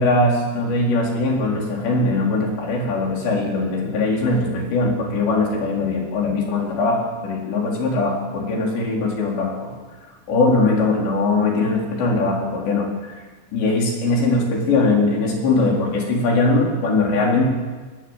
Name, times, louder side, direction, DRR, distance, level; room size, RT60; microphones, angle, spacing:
voice 1, 0.0-9.7 10.3-13.2 13.5-17.4, left 2 dB, 70° left, -1 dB, 6.4 m, -21 dB
20.5 x 20.0 x 8.2 m, 1.3 s
omnidirectional pair, 5.3 m